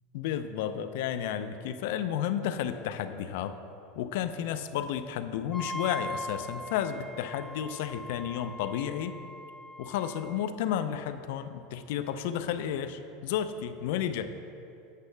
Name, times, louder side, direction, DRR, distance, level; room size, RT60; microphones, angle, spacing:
voice 1, 0.1-3.6 4.0-9.2 9.8-14.3, left 9 dB, 70° left, 10 dB, 0.4 m, -32 dB
Wind instrument woodwind instrument, 5.5-10.5, left 1 dB, ahead, 0.4 m, -41 dB
8.3 x 8.1 x 3.3 m, 2.7 s
supercardioid pair, 155°, 0 cm